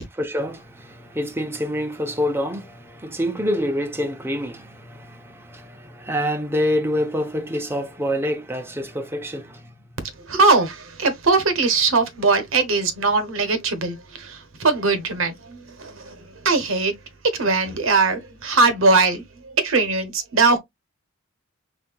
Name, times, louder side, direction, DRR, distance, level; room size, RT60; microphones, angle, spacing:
voice 1, 0.0-9.7, equal, 10° right, 0.6 m, -26 dB
voice 2, 10.0-17.0 17.2-20.6, right 3 dB, 70° right, 0.9 m, -21 dB
4.2 x 3.6 x 2.3 m
head